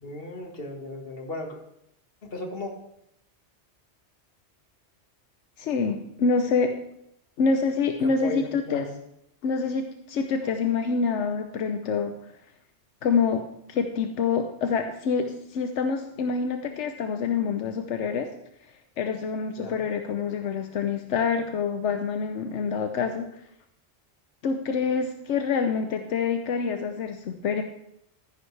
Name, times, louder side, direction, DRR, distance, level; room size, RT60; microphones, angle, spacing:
voice 1, 0.0-1.5 2.2-2.7 8.0-8.9 19.6-19.8, left 1 dB, 55° left, 3 dB, 1.9 m, -35 dB
voice 2, 5.6-6.8 7.4-8.9 9.4-12.1 13.0-18.3 19.0-23.3 24.4-27.6, left 5 dB, 85° left, 6 dB, 1.1 m, -26 dB
14.0 x 10.5 x 3.3 m, 0.77 s
omnidirectional pair, 1.2 m